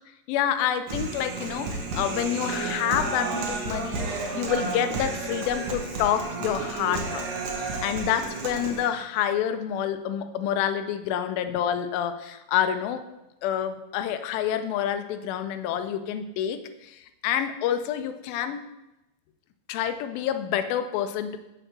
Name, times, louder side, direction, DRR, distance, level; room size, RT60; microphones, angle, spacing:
voice 1, 0.3-7.3 7.6-13.0 13.4-18.7 19.7-21.4, left 10 dB, 85° left, 9 dB, 2.4 m, -28 dB
Human voice, 0.9-8.9, right 3 dB, 85° right, 1.2 m, -32 dB
6.4 x 4.4 x 6.4 m, 0.95 s
omnidirectional pair, 4.2 m